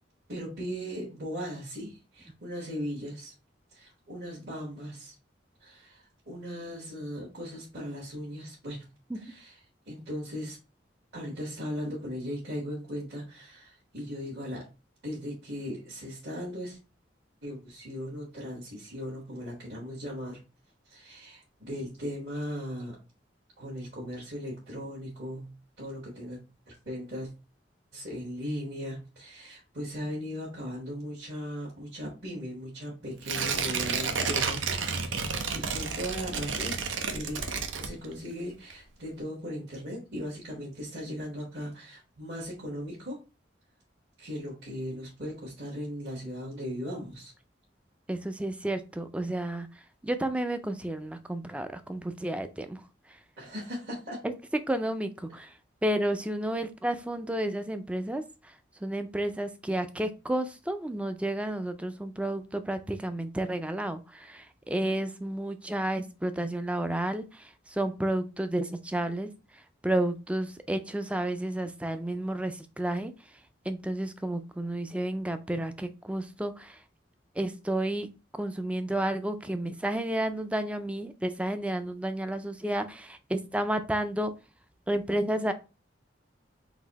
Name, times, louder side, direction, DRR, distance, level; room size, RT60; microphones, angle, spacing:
voice 1, 0.3-3.3 3.7-5.1 5.6-8.8 9.1-9.5 9.9-10.6 11.1-14.6 15.0-16.8 17.4-20.4 20.8-22.9 23.6-26.4 26.7-27.3 27.9-34.6 34.9-36.8 37.1-37.4 37.8-43.2 44.2-47.3 53.4-54.2, equal, 60° right, -6 dB, 1.5 m, -38 dB
Tearing, 33.2-38.4 38.7-38.8, right 5 dB, 90° right, 0.7 m, -31 dB
voice 2, 48.1-49.7 50.0-52.8 54.2-54.3 54.7-55.5 55.8-58.5 58.8-69.3 69.8-73.1 73.7-76.8 77.4-84.3 84.9-85.5, right 1 dB, 5° right, 10 dB, 0.3 m, -31 dB
3.9 x 2.7 x 4.0 m, 0.31 s
head